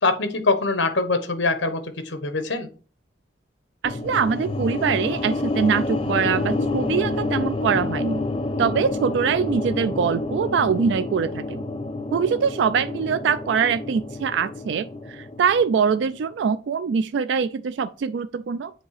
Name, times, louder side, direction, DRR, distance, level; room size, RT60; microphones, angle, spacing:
voice 1, 0.0-2.7, left 3 dB, 75° left, 1.1 m, -23 dB
sound 1, 3.8-16.1, left 2 dB, 30° left, 0.5 m, -28 dB
voice 2, 3.8-8.2 8.6-11.6 12.1-18.7, right 6 dB, 65° right, 0.3 m, -23 dB
7.9 x 2.8 x 4.8 m
head